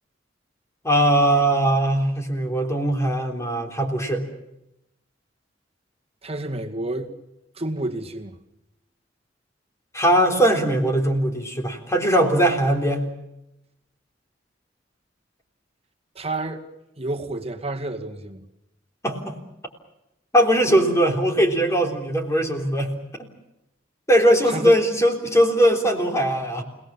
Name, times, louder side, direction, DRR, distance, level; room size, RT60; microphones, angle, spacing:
voice 1, 0.8-4.3 9.9-13.0 19.0-19.4 20.3-22.9 23.2-23.3 24.1-26.6, right 1 dB, 15° left, 4 dB, 3.5 m, -20 dB
voice 2, 6.2-7.1 7.6-8.4 16.2-16.6 17.0-18.4 24.5-24.8, right 2 dB, 35° right, 4 dB, 2.2 m, -29 dB
30.0 x 18.5 x 7.2 m, 0.89 s
head